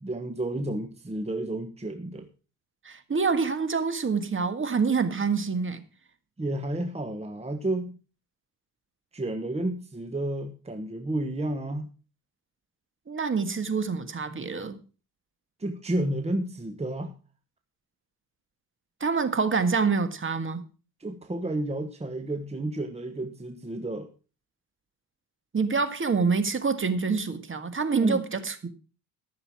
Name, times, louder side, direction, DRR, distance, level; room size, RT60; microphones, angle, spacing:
voice 1, 0.0-2.3 6.4-8.0 9.1-11.9 15.6-17.1 21.0-24.1 28.0-28.2, right 1 dB, 15° right, 1.3 m, -31 dB
voice 2, 2.8-5.8 13.1-14.8 19.0-20.6 25.5-28.7, right 5 dB, 30° right, 1.8 m, -26 dB
14.0 x 6.8 x 6.2 m
cardioid pair, 95°, 39 cm